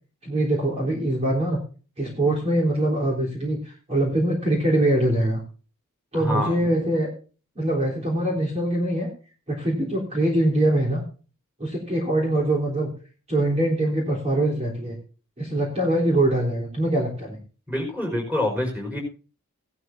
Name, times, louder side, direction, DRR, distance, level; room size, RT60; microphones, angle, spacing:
voice 1, 0.2-1.6 2.0-5.4 6.1-7.1 7.6-9.1 9.5-11.0 11.6-12.9 13.3-15.0 15.4-17.4, right 1 dB, 30° right, -2 dB, 3.5 m, -23 dB
voice 2, 6.1-6.7 17.7-19.0, left 1 dB, 10° right, 1 dB, 4.8 m, -26 dB
16.5 x 12.5 x 2.6 m, 0.36 s
head